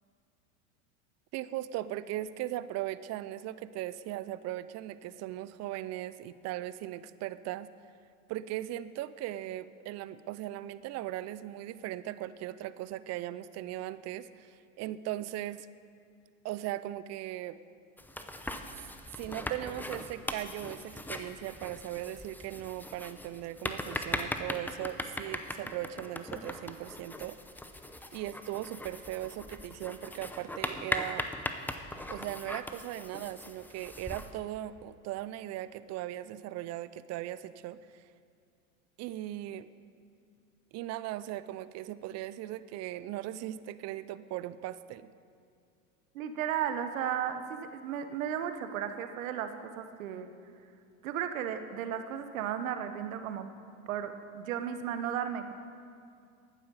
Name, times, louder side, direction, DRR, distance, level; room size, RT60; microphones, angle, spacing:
voice 1, 1.3-7.7 8.3-15.7 16.4-17.6 19.1-27.4 28.1-31.3 32.1-38.1 39.0-39.7 40.7-45.1, right 14 dB, 40° right, 16 dB, 0.5 m, -38 dB
sound 1, 18.0-34.3, left 1 dB, 5° left, 0.7 m, -40 dB
voice 2, 46.1-50.3 51.0-53.5 53.9-55.5, right 9 dB, 75° right, 9 dB, 1.1 m, -34 dB
11.5 x 9.4 x 6.8 m, 2.4 s
hypercardioid pair, 90°, 41 cm